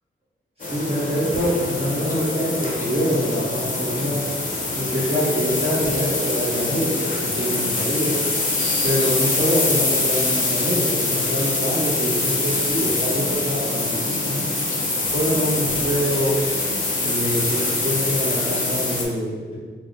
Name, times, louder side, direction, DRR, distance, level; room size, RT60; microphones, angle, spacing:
sound 1, 0.6-19.0, left 2 dB, 40° left, 0.6 m, -24 dB
voice 1, 0.6-4.2 4.7-8.1 8.8-14.4 15.0-16.4 17.0-19.6, equal, 30° right, -9 dB, 1.4 m, -25 dB
3.5 x 2.6 x 3.6 m, 1.5 s
wide cardioid pair, 170°, 21 cm